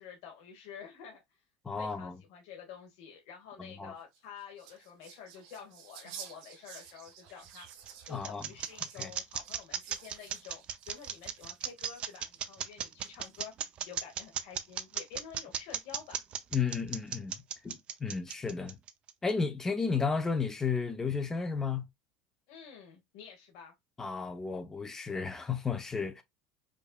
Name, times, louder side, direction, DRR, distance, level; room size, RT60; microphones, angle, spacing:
voice 1, 0.0-1.4 1.8-7.7 8.0-13.5 13.8-16.2 22.5-23.7, left 7 dB, 70° left, 1.0 m, -49 dB
voice 2, 1.6-2.2 3.6-3.9 8.1-8.5 9.0-9.1 16.5-18.8 19.2-21.8 24.0-26.2, left 5 dB, 15° left, 0.6 m, -33 dB
whispers-supernatural, 4.0-12.4 13.0-13.6, right 8 dB, 80° right, 1.2 m, -52 dB
sound 1, 7.3-19.3, right 9 dB, 30° right, 0.4 m, -36 dB
5.0 x 2.6 x 2.2 m
cardioid pair, 155°, 3 cm